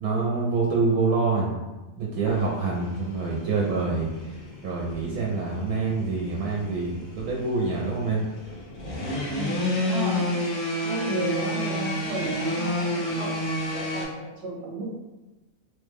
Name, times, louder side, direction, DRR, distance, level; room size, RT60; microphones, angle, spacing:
voice 1, 0.0-1.6 2.0-8.2 9.2-9.3, right 4 dB, 90° right, -3 dB, 1.1 m, -26 dB
sound 1, 2.2-14.0, left 1 dB, 65° left, 1.5 m, -31 dB
voice 2, 9.3-10.3 10.8-14.8, right 2 dB, 60° right, -8 dB, 0.8 m, -32 dB
3.4 x 2.1 x 3.3 m, 1.1 s
omnidirectional pair, 1.6 m